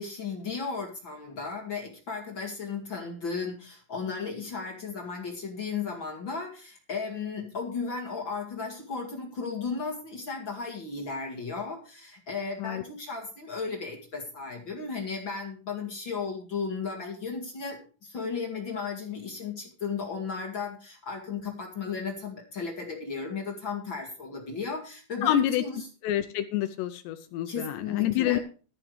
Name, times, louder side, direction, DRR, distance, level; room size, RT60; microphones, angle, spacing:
voice 1, 0.0-25.9 27.5-28.4, left 5 dB, 55° left, 1 dB, 1.4 m, -35 dB
voice 2, 25.2-25.6 26.0-28.4, left 12 dB, 85° left, 9 dB, 2.5 m, -27 dB
13.5 x 12.5 x 3.3 m, 0.37 s
omnidirectional pair, 5.8 m